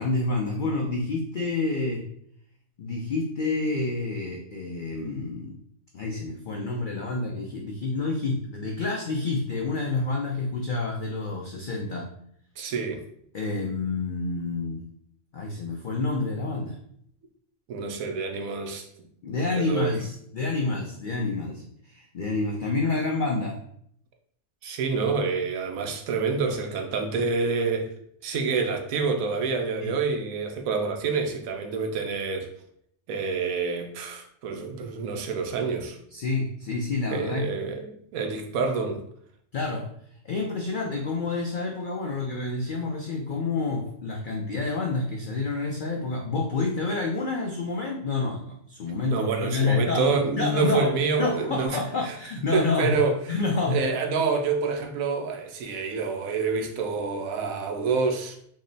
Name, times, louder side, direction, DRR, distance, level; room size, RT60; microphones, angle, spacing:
voice 1, 0.0-2.0 2.8-5.6 5.9-12.1 13.3-14.8 15.3-16.8 19.2-23.5 29.8-30.0 36.1-37.5 39.5-39.8 40.2-50.9 51.2-53.0 53.3-53.8, left 3 dB, 75° left, 0 dB, 0.4 m, -28 dB
voice 2, 12.6-13.0 17.7-18.8 19.6-19.9 24.6-27.9 28.2-32.5 33.1-36.0 37.1-39.0 49.1-51.8 52.1-52.2 52.5-53.2 53.7-58.4, right 4 dB, 80° right, 4 dB, 1.1 m, -27 dB
3.7 x 2.1 x 3.8 m, 0.67 s
omnidirectional pair, 1.5 m